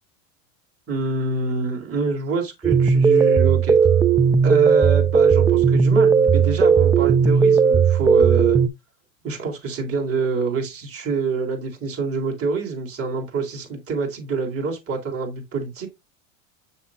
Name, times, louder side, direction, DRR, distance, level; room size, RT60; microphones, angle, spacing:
voice 1, 0.9-3.8 4.4-8.6 9.2-15.9, right 4 dB, 35° right, 3.7 m, -26 dB
sound 1, 2.6-8.7, right 6 dB, 10° right, 0.3 m, -16 dB
7.1 x 6.8 x 2.5 m
supercardioid pair, 115°, 39 cm